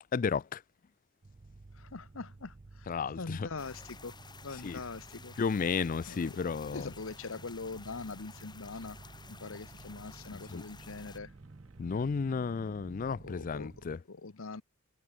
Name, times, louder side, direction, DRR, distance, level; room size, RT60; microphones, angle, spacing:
voice 1, 0.1-0.6 2.9-3.5 4.6-4.8 5.4-6.9 10.5-10.6 11.8-14.0, left 5 dB, 40° left, 0.4 m, -33 dB
sound 1, 1.2-14.0, right 3 dB, 30° right, 0.5 m, -53 dB
voice 2, 1.7-4.1 4.4-5.3 6.1-6.4 6.7-9.0 9.3-11.3 13.2-13.7 14.1-14.6, left 3 dB, 70° left, 1.0 m, -43 dB
sound 2, 3.6-11.2, left 4 dB, 20° left, 3.4 m, -53 dB
sound 3, 5.5-12.0, right 2 dB, 80° right, 2.3 m, -67 dB
head